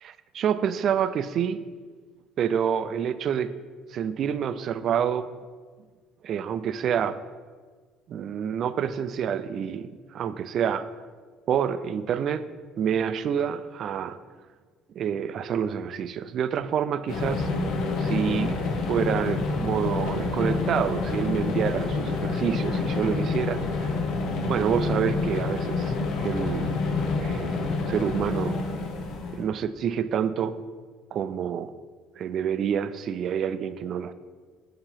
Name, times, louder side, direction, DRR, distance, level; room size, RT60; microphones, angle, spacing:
voice 1, 0.0-1.6 2.4-3.5 3.9-5.3 6.2-7.2 8.1-10.9 11.5-12.4 12.8-14.2 15.0-17.5 18.0-18.6 18.9-23.9 24.5-26.8 27.2-28.6 29.3-30.6 31.1-31.7 32.2-34.1, right 8 dB, 55° right, 12 dB, 0.3 m, -28 dB
sound 1, 17.1-29.4, left 3 dB, 70° left, 0.9 m, -28 dB
6.8 x 2.9 x 5.7 m, 1.5 s
supercardioid pair, 95°, 0 cm